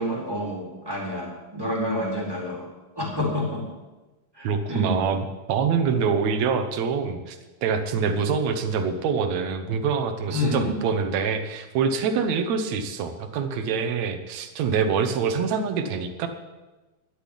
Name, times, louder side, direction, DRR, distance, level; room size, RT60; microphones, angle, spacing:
voice 1, 0.0-2.6 3.0-3.6 4.4-5.0 10.3-10.7, left 1 dB, 5° right, -4 dB, 3.5 m, -28 dB
voice 2, 4.4-7.4 7.6-16.3, right 6 dB, 70° right, 7 dB, 1.7 m, -25 dB
12.0 x 8.2 x 10.0 m, 1.1 s
omnidirectional pair, 4.6 m